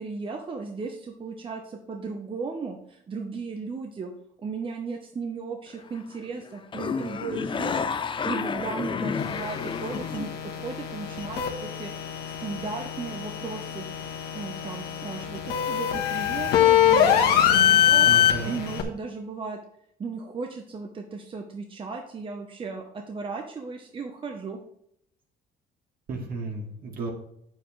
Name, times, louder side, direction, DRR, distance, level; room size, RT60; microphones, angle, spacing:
voice 1, 0.0-4.1 4.4-7.7 8.3-11.9 12.4-13.8 14.3-19.6 20.0-24.6, right 4 dB, 30° right, 3 dB, 1.0 m, -36 dB
sound 1, 5.7-6.2 6.4-10.4, left 6 dB, 30° left, 0.6 m, -30 dB
sound 2, 9.2-18.8, left 9 dB, 80° left, 1.5 m, -24 dB
voice 2, 18.1-18.7 26.1-27.1, right 3 dB, 60° right, 1 dB, 2.4 m, -33 dB
8.8 x 7.4 x 3.3 m, 0.73 s
cardioid pair, 110°, 17 cm